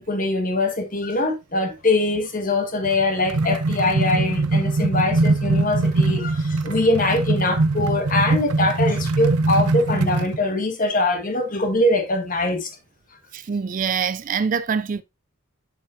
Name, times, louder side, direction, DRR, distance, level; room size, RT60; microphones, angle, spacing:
voice 1, 0.0-12.7, left 2 dB, 35° left, 1.5 m, -22 dB
sound 1, 2.8-10.4, right 2 dB, 85° right, 0.7 m, -22 dB
voice 2, 13.3-15.0, right 6 dB, 35° right, 0.3 m, -24 dB
8.0 x 7.1 x 2.6 m
head